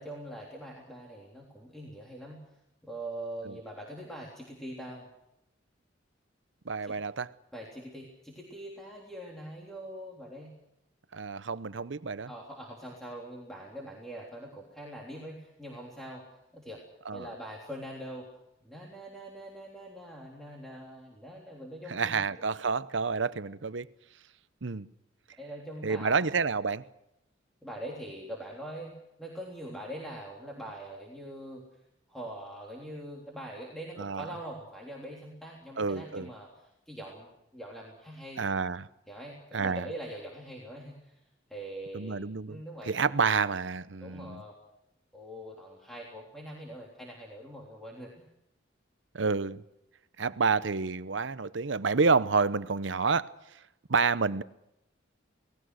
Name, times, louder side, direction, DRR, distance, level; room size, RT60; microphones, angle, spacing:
voice 1, 0.0-2.4 2.8-5.1 6.8-7.0 7.5-10.5 12.3-16.8 17.1-18.3 18.6-22.4 25.4-26.5 27.6-31.6 32.1-38.5 39.1-41.2 41.5-42.2 42.5-43.0 44.0-44.6 45.1-48.3, right 1 dB, ahead, 3.5 m, -43 dB
voice 2, 6.7-7.3 11.1-12.3 17.1-17.3 21.9-23.9 24.6-24.9 25.8-26.8 34.0-34.3 35.8-36.3 38.4-38.9 39.5-39.9 41.9-44.4 49.1-49.6 50.2-53.3 53.9-54.4, right 4 dB, 70° right, 0.8 m, -29 dB
28.5 x 19.0 x 6.4 m
head